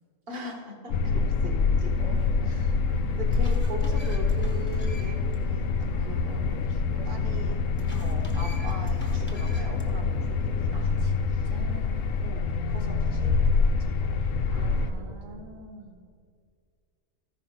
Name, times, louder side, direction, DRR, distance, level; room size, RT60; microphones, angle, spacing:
voice 1, 0.3-1.5 1.8-1.9 2.4-2.7 3.1-5.7 6.1-7.6 8.0-11.5 12.2-13.3 13.8-15.4, right 1 dB, 50° right, 3 dB, 1.4 m, -41 dB
sound 1, 0.9-14.9, left 4 dB, 80° left, 1.0 m, -26 dB
voice 2, 0.9-1.5 2.0-2.5 5.9-8.5 10.7-12.2 14.5-16.0, right 3 dB, 80° right, 2 dB, 1.6 m, -46 dB
sound 2, 2.4-2.5 3.0-5.4 5.7-5.8 7.7-9.9, equal, 10° left, 1.1 m, -48 dB
14.0 x 5.1 x 5.7 m, 2.2 s
omnidirectional pair, 1.3 m